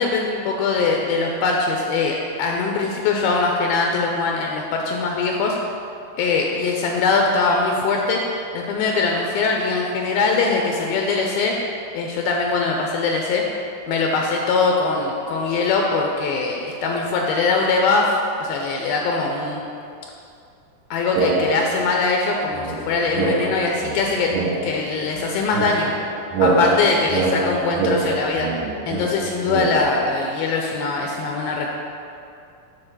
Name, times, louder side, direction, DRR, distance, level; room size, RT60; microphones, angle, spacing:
voice 1, 0.0-5.6 6.2-8.2 8.5-11.6 11.9-13.4 13.9-19.6 20.9-24.3 24.6-25.9 26.4-28.5 28.9-31.7, left 4 dB, 80° left, 0 dB, 2.3 m, -22 dB
sound 1, 21.1-22.0 22.5-29.8, right 3 dB, 75° right, 2.2 m, -24 dB
7.7 x 4.7 x 6.0 m, 2.6 s
omnidirectional pair, 4.5 m